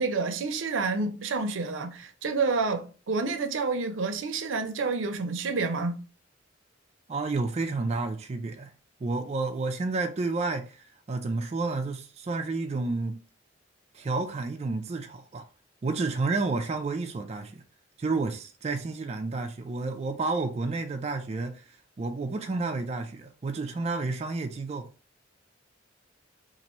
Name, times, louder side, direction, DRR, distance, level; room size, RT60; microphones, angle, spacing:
voice 1, 0.0-6.0, right 4 dB, 80° right, 0.5 m, -29 dB
voice 2, 7.1-8.7 9.0-13.2 13.9-15.5 15.8-17.6 18.0-24.9, right 3 dB, 35° right, 0.3 m, -30 dB
3.0 x 2.5 x 4.1 m
head